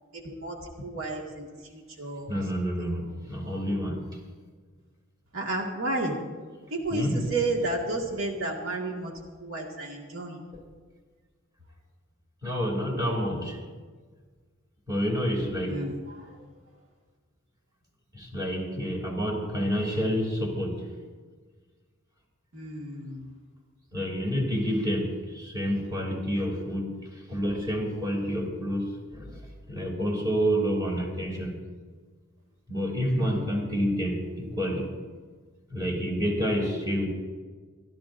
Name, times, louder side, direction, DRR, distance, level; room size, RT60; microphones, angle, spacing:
voice 1, 0.0-2.9 5.3-6.2 6.7-9.1 9.4-10.4 15.7-16.4 22.5-23.3 33.1-33.7, right 2 dB, 80° right, -1 dB, 2.0 m, -32 dB
voice 2, 2.3-4.0 6.9-7.2 12.4-13.6 14.9-15.8 18.1-20.8 23.9-29.4 29.7-31.5 32.7-34.9 35.7-37.1, equal, 20° right, -1 dB, 2.8 m, -28 dB
24.5 x 13.0 x 2.6 m, 1.5 s
head